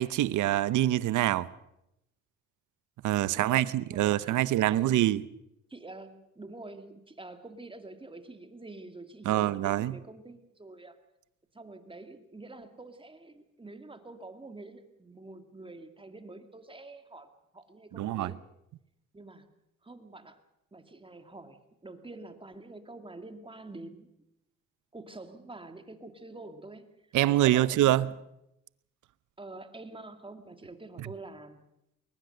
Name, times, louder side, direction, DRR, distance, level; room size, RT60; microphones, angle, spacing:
voice 1, 0.0-1.5 3.0-5.2 9.2-9.9 17.9-18.3 27.1-28.1, right 14 dB, 75° right, 0.8 m, -25 dB
voice 2, 3.2-5.2 5.7-11.0 11.5-18.4 19.1-19.5 19.8-20.4 20.7-24.1 24.9-26.9 27.3-28.1 29.4-31.6, right 2 dB, 15° right, 2.3 m, -47 dB
22.0 x 20.0 x 6.7 m
cardioid pair, 90°, 30 cm